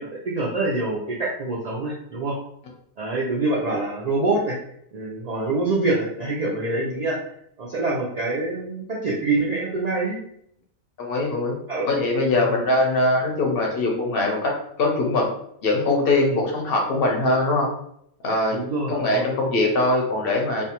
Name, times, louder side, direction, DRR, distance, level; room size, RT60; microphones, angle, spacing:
voice 1, 0.0-2.4 3.0-4.6 4.9-7.2 7.6-10.2 11.7-11.9 12.3-12.6 16.3-16.4 18.5-19.3, right 2 dB, 70° right, -5 dB, 0.4 m, -25 dB
voice 2, 11.0-11.6 11.9-15.3 15.6-17.7 18.2-18.6 18.9-20.7, left 2 dB, 55° left, 0 dB, 0.8 m, -22 dB
2.5 x 2.2 x 2.8 m, 0.71 s
omnidirectional pair, 1.3 m